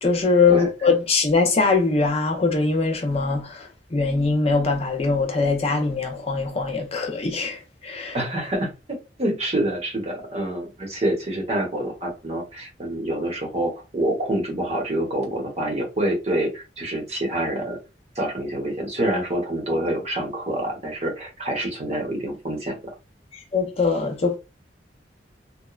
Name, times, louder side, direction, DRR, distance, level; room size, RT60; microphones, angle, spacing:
voice 1, 0.0-8.2 23.5-24.4, left 4 dB, 35° left, 0.5 m, -22 dB
voice 2, 8.1-17.8 18.1-22.8, right 1 dB, 35° right, 0.9 m, -27 dB
2.9 x 2.1 x 2.3 m
head